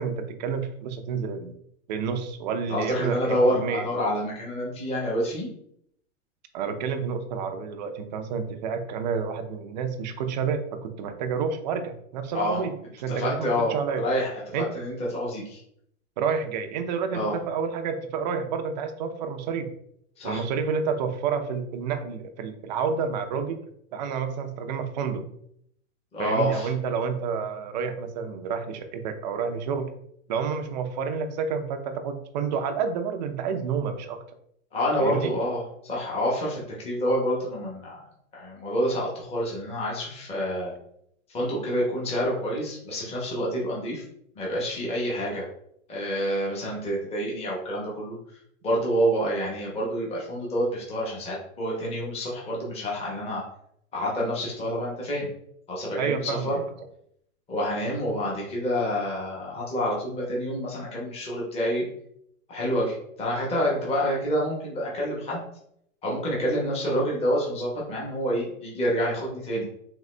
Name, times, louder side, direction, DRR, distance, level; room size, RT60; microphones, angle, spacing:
voice 1, 0.0-1.5 1.9-3.9 6.5-12.7 13.0-14.0 14.5-14.7 16.2-19.7 20.2-23.6 23.9-25.2 26.2-29.9 30.3-34.2 35.0-35.4 56.0-56.5, right 6 dB, 35° right, 7 dB, 0.5 m, -29 dB
voice 2, 2.7-5.5 12.3-12.6 13.1-15.6 17.1-17.3 20.2-20.4 26.1-26.7 34.7-38.1 38.3-40.7 41.3-44.0 44.3-45.5 45.9-48.2 48.6-53.4 53.9-55.3 55.7-56.6 57.5-61.9 62.5-65.4 66.0-69.6, equal, 15° left, -4 dB, 1.1 m, -28 dB
3.8 x 3.5 x 3.2 m, 0.71 s
hypercardioid pair, 145°, 42 cm